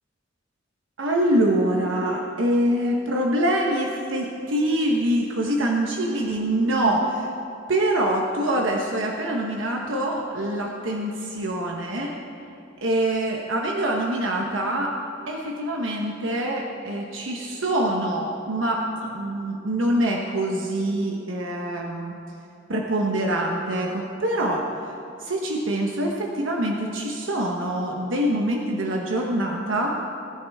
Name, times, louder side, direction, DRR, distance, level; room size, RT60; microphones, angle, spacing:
voice 1, 1.0-7.3 7.7-12.1 12.8-14.9 15.3-22.1 22.7-24.6 25.2-29.9, right 1 dB, 75° right, 0 dB, 1.1 m, -25 dB
20.5 x 10.5 x 3.6 m, 2.5 s
head